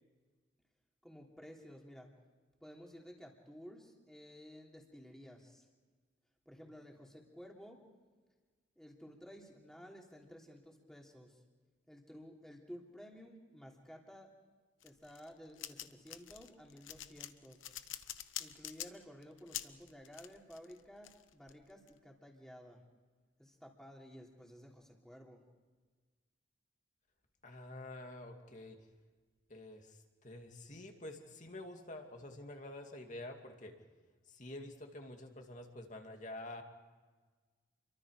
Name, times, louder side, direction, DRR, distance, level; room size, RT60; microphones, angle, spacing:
voice 1, 1.0-2.1 2.6-5.7 6.4-7.8 8.8-11.4 11.9-14.3 14.8-17.6 18.4-22.8 23.4-25.4, equal, 5° left, -1 dB, 3.2 m, -54 dB
sound 1, 14.8-21.9, left 12 dB, 80° left, 1.1 m, -46 dB
voice 2, 27.4-28.8 29.5-33.8 34.3-36.6, left 1 dB, 40° left, 3 dB, 2.5 m, -48 dB
29.5 x 23.5 x 5.0 m, 1.4 s
head